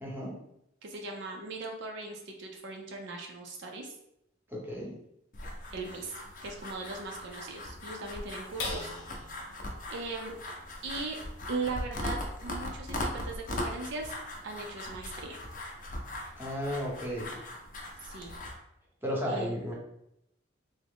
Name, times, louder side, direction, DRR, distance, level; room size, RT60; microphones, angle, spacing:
voice 1, 0.0-0.4 4.5-4.9 16.4-17.3 19.0-19.7, equal, 10° right, -3 dB, 0.8 m, -34 dB
voice 2, 0.8-3.9 5.7-8.9 9.9-10.3 10.8-11.2 11.5-14.1 14.4-15.4 18.0-18.4 19.3-19.5, right 3 dB, 65° right, 1 dB, 0.5 m, -39 dB
sound 1, 5.3-18.5, left 1 dB, 45° left, 0.6 m, -39 dB
sound 2, 8.6-15.3 15.8-15.9 16.3-16.8, left 3 dB, 85° left, 0.7 m, -46 dB
3.5 x 2.0 x 3.5 m, 0.78 s
head